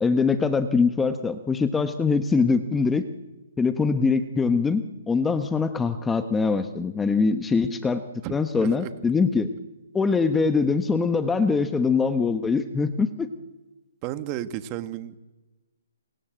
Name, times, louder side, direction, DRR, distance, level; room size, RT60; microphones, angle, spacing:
voice 1, 0.0-3.0 3.6-8.0 8.3-9.5 9.9-13.3, left 4 dB, 10° left, 9 dB, 1.1 m, -23 dB
voice 2, 8.2-9.0 14.0-15.2, right 12 dB, 25° right, 10 dB, 1.6 m, -33 dB
27.5 x 27.0 x 8.0 m, 1.1 s
hypercardioid pair, 155°, 0 cm